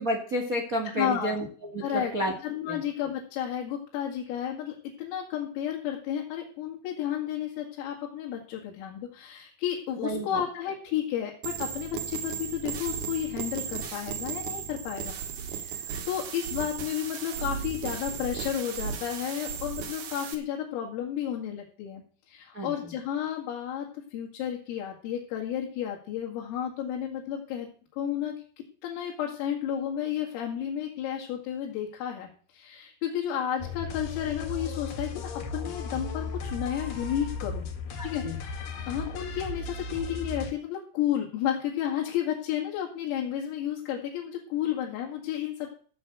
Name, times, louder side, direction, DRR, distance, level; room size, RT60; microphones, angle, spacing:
voice 1, 0.0-2.3 2.7-2.8 10.0-10.4 22.5-22.9 38.0-38.4, equal, 75° right, 4 dB, 0.7 m, -31 dB
voice 2, 1.0-1.4 1.8-2.1 2.4-22.0 22.3-28.3 28.8-37.7 38.0-38.4 38.8-45.7, left 10 dB, 85° left, -1 dB, 4.8 m, -32 dB
sound 1, 11.4-20.3, right 7 dB, 60° right, 3.3 m, -36 dB
sound 2, 33.6-40.5, left 4 dB, 55° left, 2.9 m, -36 dB
15.0 x 6.6 x 8.0 m, 0.43 s
omnidirectional pair, 5.8 m